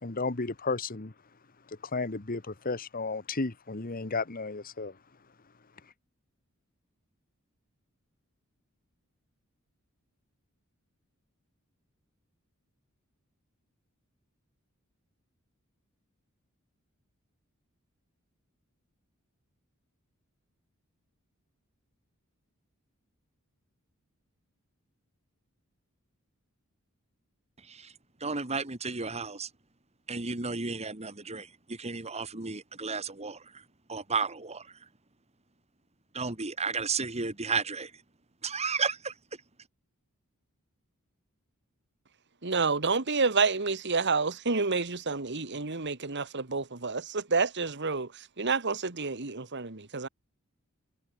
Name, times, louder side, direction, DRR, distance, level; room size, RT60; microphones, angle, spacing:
voice 1, 0.0-1.1 1.9-4.9, left 3 dB, 45° left, 1.3 m, -33 dB
voice 2, 28.2-29.5 30.1-33.6 33.9-34.7 36.1-37.9 38.4-39.1, right 4 dB, 30° right, 2.2 m, -33 dB
voice 3, 42.4-50.1, right 4 dB, 55° right, 1.9 m, -29 dB
head